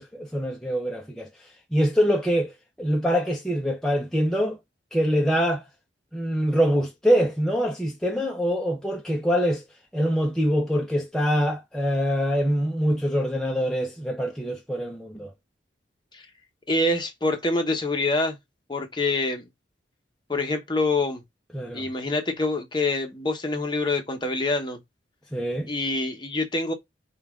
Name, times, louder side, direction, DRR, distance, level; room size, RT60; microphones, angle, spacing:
voice 1, 0.0-2.5 2.8-4.6 4.9-5.6 6.1-9.6 9.9-15.3 21.5-21.9 25.3-25.7, equal, 5° left, 0.5 m, -24 dB
voice 2, 16.7-18.4 18.7-19.4 20.3-21.2 21.7-24.8 25.7-26.7, left 2 dB, 25° left, 0.8 m, -25 dB
5.4 x 2.3 x 3.6 m
head